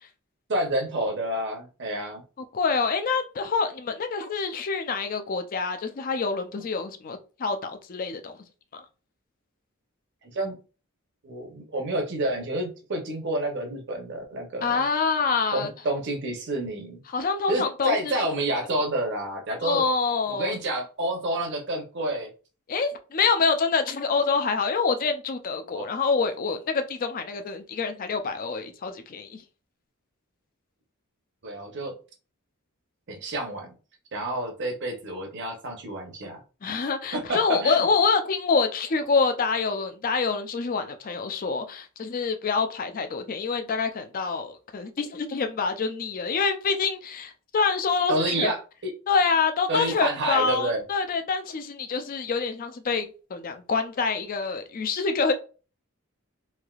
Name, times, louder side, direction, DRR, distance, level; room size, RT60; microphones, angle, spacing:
voice 1, 0.5-2.2 10.2-10.6 11.2-14.8 15.5-17.0 17.5-19.9 20.3-22.3 25.7-25.9 31.4-31.9 33.1-33.7 34.1-36.4 37.1-37.9 48.1-48.9 49.7-50.8, right 1 dB, 55° right, 0.8 m, -29 dB
voice 2, 2.5-8.4 8.7-8.8 14.6-15.7 17.1-18.2 19.6-20.6 22.7-29.4 36.6-48.5 49.1-53.1 53.3-55.3, left 4 dB, 40° left, 0.4 m, -26 dB
3.2 x 2.7 x 2.4 m
head